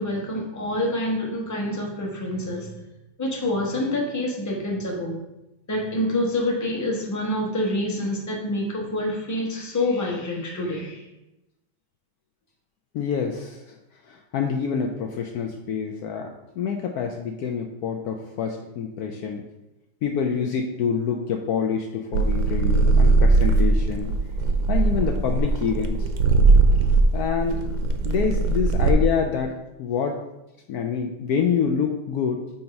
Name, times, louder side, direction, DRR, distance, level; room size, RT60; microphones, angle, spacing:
voice 1, 0.0-2.7 3.2-5.2 5.7-11.1, left 1 dB, 15° left, -2 dB, 0.7 m, -27 dB
voice 2, 12.9-13.6 14.1-19.4 20.0-24.1 24.7-26.1 27.1-27.6 28.0-30.2 30.7-32.4, left 6 dB, 90° left, 2 dB, 0.8 m, -26 dB
sound 1, 22.1-28.9, right 3 dB, 75° right, 1.2 m, -20 dB
7.6 x 2.8 x 5.2 m, 0.95 s
omnidirectional pair, 2.2 m